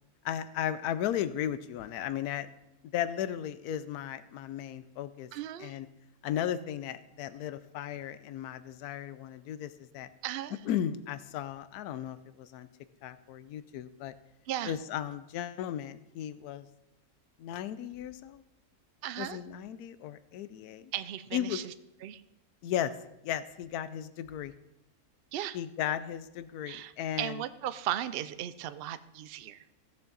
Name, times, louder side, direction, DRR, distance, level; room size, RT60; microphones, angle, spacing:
voice 1, 0.2-2.5 2.9-5.3 5.6-5.9 6.2-10.1 10.6-12.7 13.0-14.1 14.7-16.6 17.4-18.4 19.2-20.9 21.3-21.6 22.6-22.9 23.2-24.5 25.5-27.4, left 10 dB, 85° left, 14 dB, 1.1 m, -35 dB
voice 2, 5.3-5.7 10.2-10.6 14.5-14.7 19.0-19.4 20.9-21.6 22.0-22.2 25.3-25.6 26.7-26.9 27.2-29.6, right 12 dB, 75° right, 13 dB, 0.5 m, -36 dB
16.0 x 7.0 x 3.9 m, 0.89 s
omnidirectional pair, 1.6 m